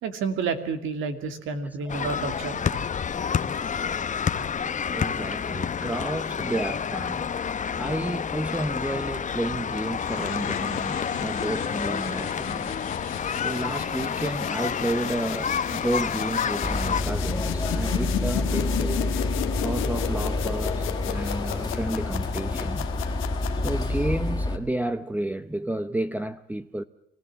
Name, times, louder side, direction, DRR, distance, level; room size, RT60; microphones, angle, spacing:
voice 1, 0.0-2.8, right 5 dB, 85° right, 2.5 m, -30 dB
sound 1, 1.9-17.0, left 7 dB, 40° left, 0.9 m, -29 dB
voice 2, 3.1-12.8 13.4-19.1 19.6-22.9 23.6-26.8, right 1 dB, 10° right, 0.8 m, -32 dB
sound 2, 9.9-24.2, left 13 dB, 85° left, 1.2 m, -34 dB
sound 3, 16.6-24.6, left 2 dB, 20° left, 2.4 m, -28 dB
25.5 x 16.0 x 7.4 m
cardioid pair, 90°, 20 cm